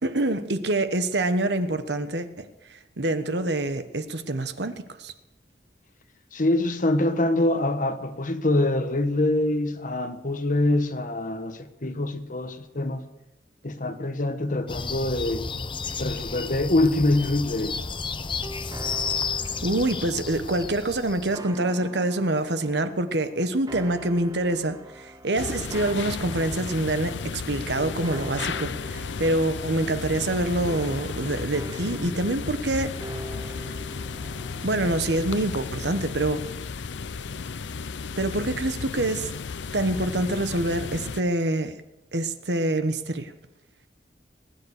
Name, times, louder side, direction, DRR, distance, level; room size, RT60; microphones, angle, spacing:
voice 1, 0.0-2.5 3.0-5.1 19.6-32.9 34.6-36.4 38.2-39.3 39.7-41.7 42.1-43.3, right 2 dB, 70° right, 1.2 m, -26 dB
voice 2, 6.3-13.0 13.6-15.5 16.0-17.8, left 2 dB, 50° left, 1.2 m, -24 dB
sound 1, 14.7-21.4, left 5 dB, 30° left, 0.7 m, -32 dB
sound 2, 17.4-35.4, right 1 dB, 20° right, 0.8 m, -44 dB
sound 3, 25.4-41.2, left 5 dB, 90° left, 0.6 m, -34 dB
20.0 x 9.6 x 6.6 m
head